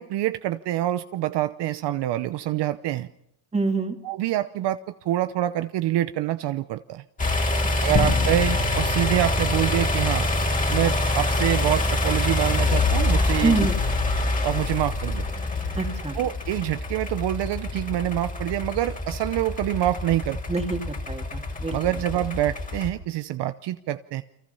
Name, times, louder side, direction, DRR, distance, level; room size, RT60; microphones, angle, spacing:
voice 1, 0.0-3.1 4.0-7.0 7.8-10.3 10.7-13.7 14.4-15.2 16.1-20.4 21.7-24.2, right 14 dB, 60° right, 11 dB, 0.9 m, -26 dB
voice 2, 3.5-3.9 7.9-8.0 13.4-13.8 15.8-16.2 20.5-21.8, right 3 dB, 15° right, 4 dB, 2.5 m, -26 dB
sound 1, 7.2-22.9, left 2 dB, 15° left, 2.7 m, -26 dB
sound 2, 7.9-10.5, left 6 dB, 35° left, 2.3 m, -30 dB
29.5 x 24.0 x 5.6 m, 0.80 s
cardioid pair, 140°, 46 cm